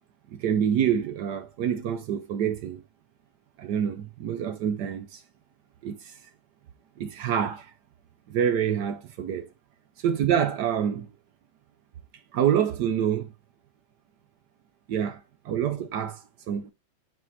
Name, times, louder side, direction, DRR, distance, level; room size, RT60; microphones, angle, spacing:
voice 1, 0.3-2.8 3.6-5.2 5.8-6.2 7.0-7.7 8.3-9.5 10.0-11.1 12.3-13.3 14.9-16.7, right 9 dB, 70° right, 1.1 m, -27 dB
6.4 x 4.3 x 3.9 m
omnidirectional pair, 2.1 m